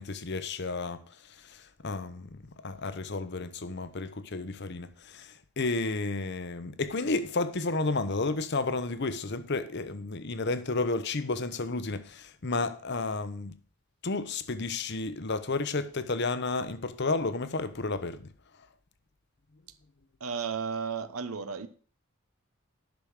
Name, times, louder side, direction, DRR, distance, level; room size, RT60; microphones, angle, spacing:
voice 1, 0.0-13.5 14.0-18.3, left 3 dB, 50° left, 0.9 m, -32 dB
voice 2, 20.2-21.7, right 6 dB, 80° right, 0.9 m, -33 dB
10.5 x 6.4 x 6.5 m
head